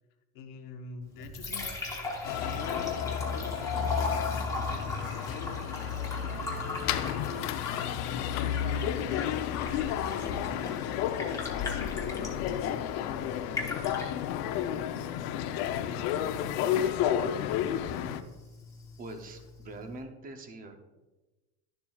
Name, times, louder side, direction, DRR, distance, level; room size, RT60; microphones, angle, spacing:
voice 1, 0.3-1.7 2.4-5.6 6.2-7.7 8.7-10.9 11.5-12.9 13.5-14.9 15.3-16.5 17.0-18.1, left 6 dB, 45° left, 5 dB, 0.9 m, -44 dB
Liquid, 1.0-20.0, left 2 dB, 5° left, 0.9 m, -40 dB
sound 1, 2.2-18.2, left 9 dB, 75° left, 0.7 m, -31 dB
voice 2, 19.0-20.8, right 2 dB, 20° right, 6 dB, 0.6 m, -43 dB
11.5 x 7.1 x 2.3 m, 1.1 s
cardioid pair, 165°, 47 cm